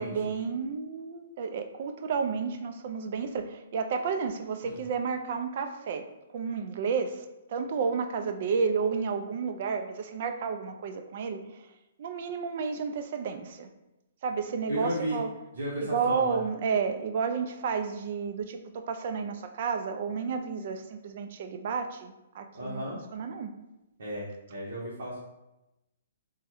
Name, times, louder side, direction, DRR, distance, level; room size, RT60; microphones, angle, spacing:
voice 1, 0.0-6.1 6.3-11.4 12.0-13.7 14.2-15.3 15.8-22.8 23.1-23.5, right 5 dB, 45° right, 7 dB, 0.3 m, -31 dB
voice 2, 14.7-15.2 15.5-16.4 22.5-23.0 24.0-25.2, equal, 65° right, -7 dB, 0.8 m, -34 dB
3.4 x 2.1 x 3.0 m, 0.95 s
hypercardioid pair, 165°, 0 cm